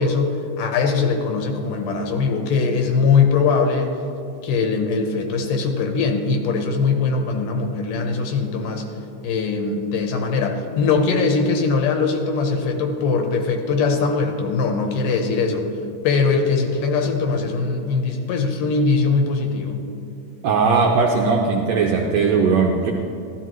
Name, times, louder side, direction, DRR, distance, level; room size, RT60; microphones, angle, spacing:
voice 1, 0.0-4.0 4.4-8.9 9.2-15.7 16.0-19.8, left 4 dB, 80° left, 4 dB, 2.5 m, -21 dB
voice 2, 20.4-22.9, right 4 dB, 80° right, 0 dB, 1.6 m, -18 dB
13.5 x 13.0 x 3.1 m, 2.6 s
omnidirectional pair, 3.8 m